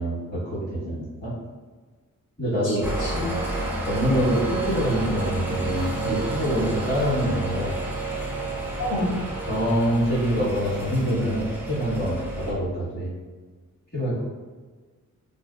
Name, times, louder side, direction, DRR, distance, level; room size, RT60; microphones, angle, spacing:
voice 1, 0.0-1.3 2.4-2.8 3.9-7.7 9.5-12.2 12.4-13.1 13.9-14.2, equal, 30° left, -11 dB, 1.4 m, -25 dB
voice 2, 2.7-3.3 8.8-9.2, left 1 dB, 75° left, -9 dB, 0.9 m, -28 dB
sound 1, 2.8-12.5, right 2 dB, 5° right, 0.4 m, -30 dB
2.6 x 2.5 x 2.3 m, 1.4 s
wide cardioid pair, 135°, 30 cm